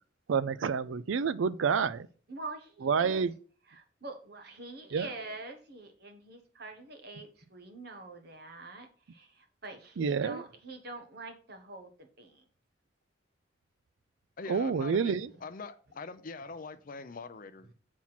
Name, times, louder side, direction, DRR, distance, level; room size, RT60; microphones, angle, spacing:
voice 1, 0.3-2.1 2.8-3.3 4.9-5.1 10.0-10.4 14.5-15.3, right 6 dB, 80° right, 0.4 m, -28 dB
voice 2, 2.3-3.2 3.7-12.4 15.2-15.4, right 2 dB, 55° right, 1.4 m, -45 dB
voice 3, 14.4-15.1 15.4-17.7, left 4 dB, 45° left, 0.5 m, -43 dB
7.2 x 4.4 x 5.9 m
head